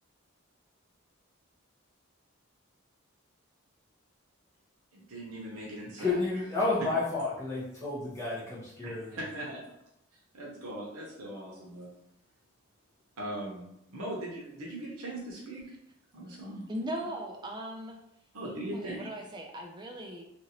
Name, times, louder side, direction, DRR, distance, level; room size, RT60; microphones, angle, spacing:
voice 1, 4.9-6.3 8.8-9.6 10.3-11.9 13.2-13.6 13.9-15.6 16.1-16.6 18.3-19.1, right 1 dB, 85° right, -3 dB, 0.8 m, -39 dB
voice 2, 6.0-9.2, left 3 dB, 15° left, -8 dB, 0.9 m, -31 dB
voice 3, 16.7-18.0 18.7-20.2, right 1 dB, 20° right, 2 dB, 0.3 m, -38 dB
2.8 x 2.5 x 2.9 m, 0.83 s
head